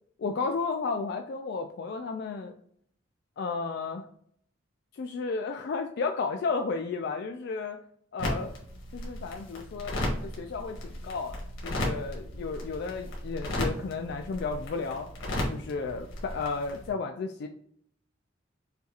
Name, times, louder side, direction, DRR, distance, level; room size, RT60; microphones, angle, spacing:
voice 1, 0.2-2.5 3.4-4.1 4.9-7.8 8.1-8.5 8.9-11.4 11.6-15.1 15.5-17.5, left 4 dB, 60° left, 5 dB, 0.3 m, -33 dB
sound 1, 8.2-16.9, left 1 dB, 90° left, 1.4 m, -35 dB
5.5 x 2.4 x 2.8 m, 0.63 s
head